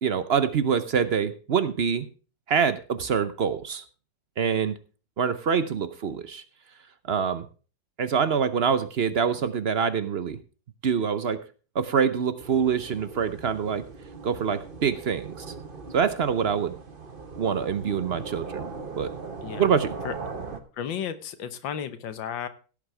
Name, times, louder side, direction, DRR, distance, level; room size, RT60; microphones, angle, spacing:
voice 1, 0.0-2.1 2.5-3.8 4.4-4.7 5.2-6.4 7.1-7.5 8.0-10.4 10.8-11.4 11.7-13.9 14.2-15.4 15.9-16.7 17.4-18.7 19.0-19.1 19.6-19.9, right 7 dB, 60° right, 12 dB, 0.6 m, -25 dB
sound 1, 12.4-20.6, right 4 dB, 35° right, 1.2 m, -39 dB
voice 2, 19.4-19.8 20.0-20.1 20.7-22.5, left 8 dB, 90° left, 11 dB, 1.8 m, -33 dB
17.0 x 8.6 x 3.3 m, 0.36 s
omnidirectional pair, 2.0 m